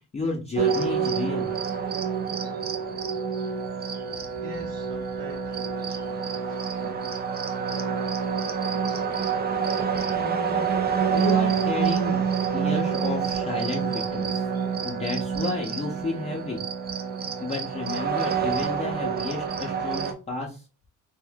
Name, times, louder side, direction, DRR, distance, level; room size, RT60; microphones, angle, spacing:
voice 1, 0.1-1.5 10.1-10.7 11.1-12.2 12.5-14.5 14.8-16.7 17.4-20.6, left 3 dB, 20° left, -1 dB, 0.6 m, -32 dB
sound 1, 0.5-20.1, right 6 dB, 30° right, 0.5 m, -27 dB
voice 2, 4.2-7.0 7.6-8.0 8.4-9.2, right 4 dB, 85° right, -2 dB, 0.9 m, -45 dB
2.7 x 2.5 x 3.4 m, 0.32 s
cardioid pair, 110°, 33 cm